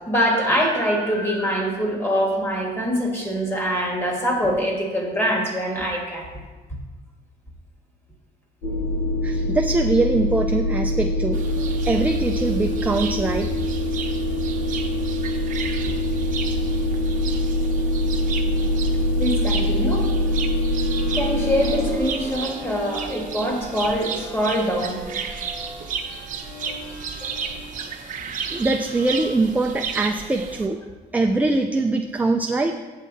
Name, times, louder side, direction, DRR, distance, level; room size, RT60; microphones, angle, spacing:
voice 1, 0.1-6.3 19.2-20.1 21.1-25.0 27.2-27.4, equal, 15° left, -1 dB, 2.2 m, -24 dB
sound 1, 8.6-22.0, left 1 dB, 80° left, 1.7 m, -24 dB
voice 2, 9.2-11.4 11.9-13.5 28.5-30.8 31.1-32.7, right 2 dB, 10° right, 3 dB, 0.4 m, -22 dB
sound 2, 11.3-30.7, right 6 dB, 50° right, 0.9 m, -34 dB
sound 3, 19.5-29.8, left 1 dB, 55° left, 1.9 m, -41 dB
8.2 x 7.4 x 4.2 m, 1.3 s
cardioid pair, 110°, 17 cm